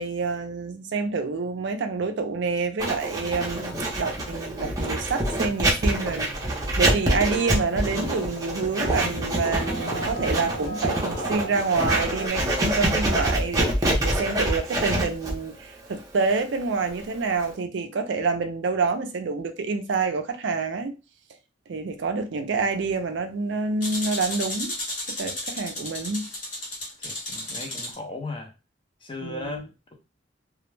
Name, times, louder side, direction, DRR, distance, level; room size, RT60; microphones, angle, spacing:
voice 1, 0.0-21.0 21.7-24.7 25.1-26.3 29.2-29.6, right 4 dB, 65° right, 0.4 m, -27 dB
Writing, 2.8-17.5, right 1 dB, 20° right, 0.6 m, -26 dB
sound 1, 5.1-12.3, right 2 dB, 70° left, 1.0 m, -38 dB
sound 2, 23.8-27.9, left 1 dB, 40° left, 1.0 m, -33 dB
voice 2, 27.0-28.5 29.0-29.9, left 2 dB, 25° left, 0.6 m, -36 dB
2.2 x 2.1 x 3.1 m
head